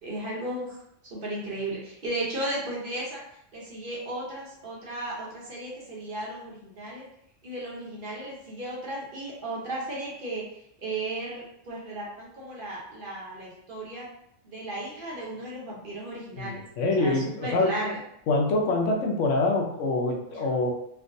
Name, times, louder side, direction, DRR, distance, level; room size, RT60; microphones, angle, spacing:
voice 1, 0.0-0.8 1.1-3.2 3.5-7.0 7.4-10.4 10.8-14.1 14.4-16.6 17.0-18.0 20.3-20.4, right 1 dB, 50° right, -5 dB, 0.9 m, -35 dB
voice 2, 16.4-17.7 18.3-20.7, left 2 dB, 75° left, 0 dB, 1.0 m, -25 dB
3.4 x 2.3 x 2.5 m, 0.73 s
omnidirectional pair, 1.3 m